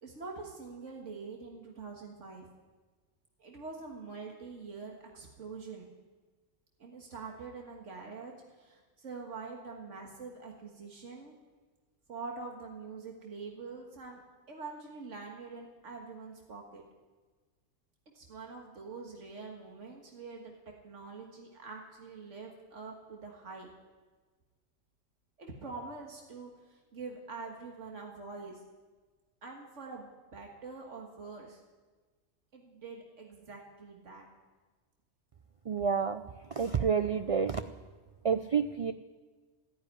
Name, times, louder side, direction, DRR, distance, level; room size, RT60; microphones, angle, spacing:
voice 1, 0.0-2.5 3.4-5.9 6.8-11.3 12.1-14.2 14.5-16.8 18.1-20.5 20.8-23.7 25.4-28.6 29.4-31.6 32.5-34.3, right 4 dB, 90° right, 0 dB, 2.0 m, -45 dB
voice 2, 35.7-36.2 36.5-37.6 38.2-38.9, right 6 dB, 55° right, 10 dB, 0.4 m, -29 dB
14.0 x 9.9 x 9.9 m, 1.4 s
omnidirectional pair, 1.2 m